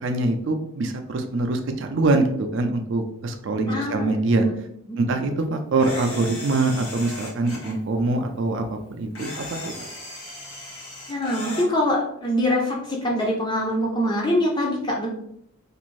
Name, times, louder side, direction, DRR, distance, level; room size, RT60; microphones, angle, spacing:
voice 1, 0.0-4.4 5.0-9.6, right 2 dB, 55° right, 6 dB, 0.4 m, -24 dB
voice 2, 3.7-4.5 4.9-5.1 11.1-15.1, left 1 dB, 20° left, -2 dB, 0.4 m, -24 dB
Camera, 5.8-7.7 9.2-11.7, left 1 dB, 80° left, 1.2 m, -36 dB
2.5 x 2.5 x 3.1 m, 0.73 s
head